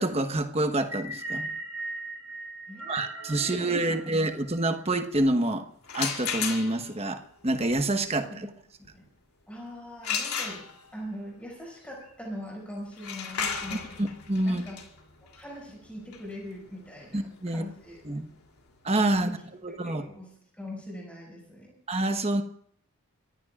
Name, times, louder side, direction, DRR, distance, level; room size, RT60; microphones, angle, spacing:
voice 1, 0.0-1.5 2.9-5.6 5.9-8.5 14.3-14.6 17.1-17.6 18.0-18.3 18.8-19.3 19.6-20.0 21.9-22.4, right 2 dB, 30° right, 7 dB, 1.2 m, -27 dB
sound 1, 0.8-5.1, right 2 dB, 75° right, 3.1 m, -39 dB
sound 2, 5.8-7.0 10.0-11.1 12.9-18.6, left 6 dB, 85° left, 3.0 m, -34 dB
voice 2, 8.2-8.5 8.9-9.0 9.5-10.7 10.9-14.0 14.4-14.8 15.2-18.0 19.1-19.4 19.8-21.8, equal, 5° left, -2 dB, 6.2 m, -41 dB
26.0 x 15.5 x 2.5 m, 0.65 s
head